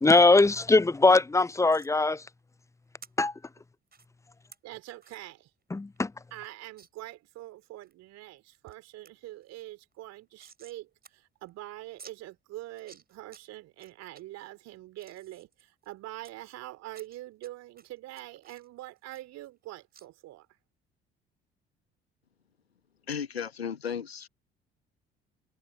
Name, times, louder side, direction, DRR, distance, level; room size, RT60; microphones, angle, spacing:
voice 1, 0.0-2.2 3.2-3.3 5.7-6.1, left 3 dB, 10° left, 0.5 m, -21 dB
sound 1, 1.7-1.9 3.0-3.1 3.9-4.1 4.5-4.6 5.0-5.2 5.6-5.7 6.0-6.1 6.8-6.9 7.4-7.9 8.4-8.7 9.0-9.1 9.4-10.8 11.0-11.1 11.4-11.5 12.0-12.1 12.7-13.4 13.8-14.2 14.7-16.3 16.9-17.5 17.8-19.6 19.9-20.1, right 5 dB, 30° right, 5.3 m, -54 dB
voice 2, 4.6-5.5 6.3-20.5, right 16 dB, 55° right, 3.3 m, -44 dB
voice 3, 23.1-24.3, left 7 dB, 85° left, 1.6 m, -34 dB
figure-of-eight pair, 50°, 30 cm